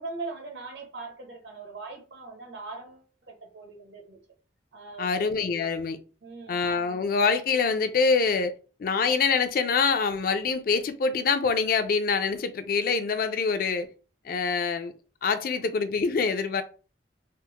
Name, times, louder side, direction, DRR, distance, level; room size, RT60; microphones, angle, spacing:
voice 1, 0.0-4.2 4.7-5.1 6.2-6.6 15.6-15.7, right 3 dB, 80° right, 1.0 m, -40 dB
voice 2, 5.0-6.0 6.5-8.5 8.8-13.9 14.2-14.9 15.2-16.6, left 5 dB, 55° left, 0.4 m, -25 dB
3.4 x 2.0 x 2.9 m
head